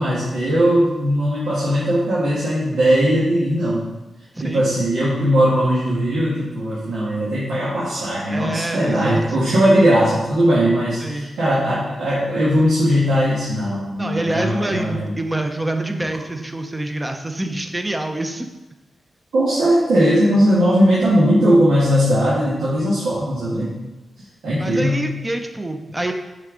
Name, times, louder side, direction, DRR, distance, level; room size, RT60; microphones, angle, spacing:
voice 1, 0.0-3.9 4.4-15.1 15.9-16.0 19.3-23.8 24.4-25.0, equal, 90° right, -9 dB, 1.6 m, -18 dB
voice 2, 4.4-4.7 8.3-9.2 11.0-11.3 14.0-18.5 24.6-26.1, right 1 dB, 15° right, 5 dB, 0.6 m, -26 dB
6.5 x 4.5 x 3.8 m, 1.1 s
cardioid pair, 100°, 0 cm